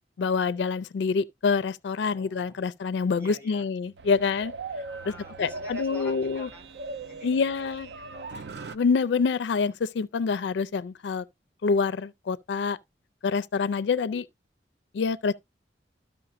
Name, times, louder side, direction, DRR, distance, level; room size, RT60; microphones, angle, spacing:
voice 1, 0.2-4.5 5.4-6.5 7.2-7.9 8.7-11.2 11.6-12.8 13.2-14.3 14.9-15.3, left 5 dB, 75° left, 0.4 m, -26 dB
voice 2, 2.0-2.6 3.1-3.6 4.1-4.2 4.9-7.7 8.0-8.5 13.6-14.0, left 1 dB, 15° right, 3.7 m, -48 dB
sound 1, 3.8-8.8, right 3 dB, 70° right, 0.5 m, -39 dB
12.5 x 5.4 x 2.5 m
head